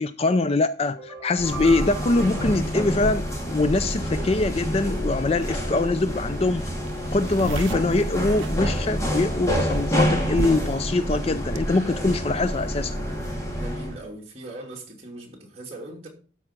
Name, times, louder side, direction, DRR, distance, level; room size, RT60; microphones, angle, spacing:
voice 1, 0.0-6.7 7.1-13.0, left 2 dB, 30° left, 0.4 m, -23 dB
sound 1, 0.8-3.9, right 4 dB, 10° right, 3.7 m, -40 dB
sound 2, 1.4-14.0, equal, 15° left, 2.2 m, -28 dB
sound 3, 6.6-6.7 6.9-9.3 9.7-10.8 11.1-11.6, right 3 dB, 80° right, 0.6 m, -32 dB
voice 2, 13.6-16.1, right 2 dB, 35° right, 2.7 m, -40 dB
12.5 x 4.8 x 5.9 m
head